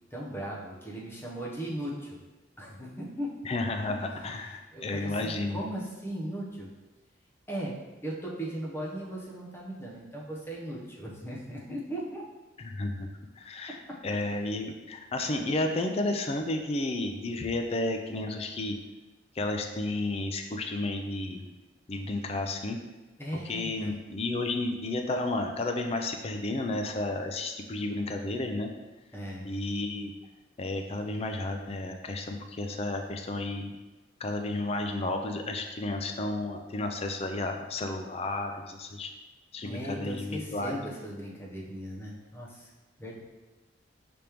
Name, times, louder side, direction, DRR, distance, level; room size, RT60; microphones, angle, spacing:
voice 1, 0.1-2.2 2.6-3.3 4.7-6.7 7.5-7.7 8.0-12.2 13.9-14.0 23.2-24.0 29.1-29.4 39.6-42.7 43.0-43.2, right 1 dB, 10° left, -4 dB, 0.7 m, -37 dB
voice 2, 3.4-5.6 12.6-13.1 13.4-13.8 14.0-18.8 19.4-21.4 21.9-22.8 23.5-28.7 29.4-30.1 30.6-33.7 34.2-39.1 39.5-40.8, left 2 dB, 30° left, 4 dB, 0.4 m, -32 dB
5.1 x 3.4 x 2.9 m, 1.2 s
head